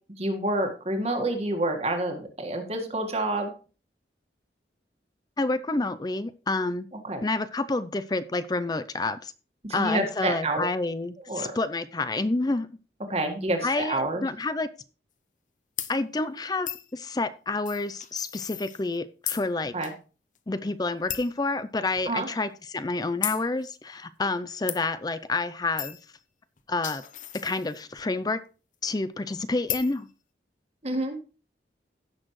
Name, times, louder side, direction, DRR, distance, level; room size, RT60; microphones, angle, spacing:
voice 1, 0.2-3.5 7.0-7.2 9.6-10.6 11.3-11.5 13.1-14.2 19.7-19.9 22.1-22.3 30.8-31.2, right 1 dB, 35° right, 1.7 m, -28 dB
voice 2, 5.4-6.9 7.2-9.3 9.7-12.7 13.6-14.7 15.9-19.7 20.5-26.0 26.7-27.0 27.3-28.4 28.8-30.1, left 3 dB, 20° left, 0.5 m, -29 dB
sound 1, 15.8-15.9 16.7-16.9 17.7-19.0 19.3-19.5 19.8-19.9 20.4-20.5 21.1-21.4 22.0-22.1 23.2-23.4 24.7-24.8 25.8-26.1 26.6-28.0 29.7-30.0, left 11 dB, 45° left, 0.8 m, -34 dB
16.0 x 6.4 x 3.1 m
head